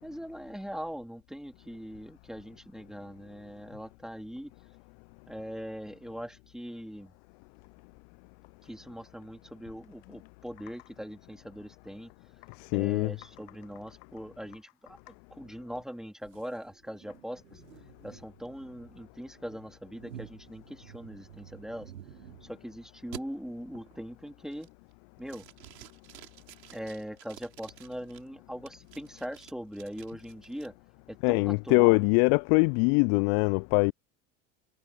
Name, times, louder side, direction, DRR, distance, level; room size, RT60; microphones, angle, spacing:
voice 1, 0.0-4.5 5.3-7.1 8.6-12.1 12.7-17.6 18.0-21.9 22.4-24.7 25.2-25.4 26.7-30.7 31.1-32.0, equal, ahead, 3.4 m, -41 dB
voice 2, 12.6-13.1 31.2-33.9, left 38 dB, 40° left, 0.4 m, -23 dB
sound 1, 16.3-22.6 23.1-23.2 23.7-24.1 24.5-24.9 25.3-28.2 28.7-30.7, right 11 dB, 75° right, 5.8 m, -50 dB
figure-of-eight pair, 80°, 50 cm